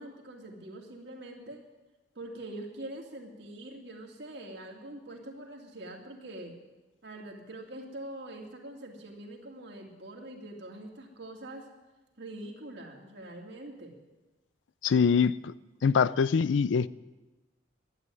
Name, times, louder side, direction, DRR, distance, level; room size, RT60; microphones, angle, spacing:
voice 1, 0.0-1.6 2.2-6.6 7.0-11.7 12.2-14.0, right 1 dB, 65° right, 1 dB, 2.3 m, -44 dB
voice 2, 14.8-15.5 15.8-16.9, left 6 dB, 80° left, 18 dB, 0.4 m, -24 dB
12.0 x 9.2 x 9.6 m, 1.1 s
head